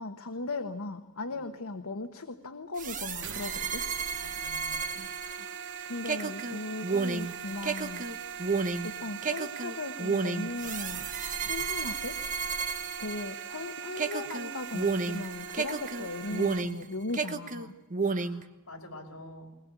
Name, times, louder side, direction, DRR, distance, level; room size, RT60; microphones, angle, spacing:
voice 1, 0.0-3.8 5.8-8.0 8.4-8.5 8.8-11.0 11.4-12.2 13.0-17.7, left 2 dB, 80° left, 6 dB, 1.3 m, -37 dB
sound 1, 2.8-13.6 14.0-16.8 17.1-18.4, right 4 dB, 35° right, 1.1 m, -32 dB
sound 2, 3.2-16.6, right 8 dB, 60° right, 1.3 m, -41 dB
voice 2, 4.2-4.8 18.0-19.5, left 1 dB, 65° left, 1 dB, 5.1 m, -48 dB
21.5 x 20.5 x 8.3 m, 1.1 s
head